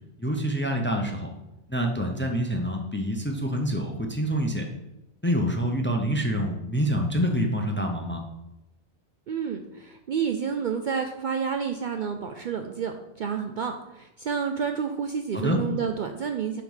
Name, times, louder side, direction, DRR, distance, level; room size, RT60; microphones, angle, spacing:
voice 1, 0.2-1.3 1.7-4.7 5.2-8.2 15.3-15.6, equal, 10° left, 2 dB, 0.6 m, -26 dB
voice 2, 9.3-16.6, right 6 dB, 60° right, 5 dB, 0.5 m, -30 dB
7.5 x 3.7 x 5.5 m, 0.95 s
omnidirectional pair, 1.2 m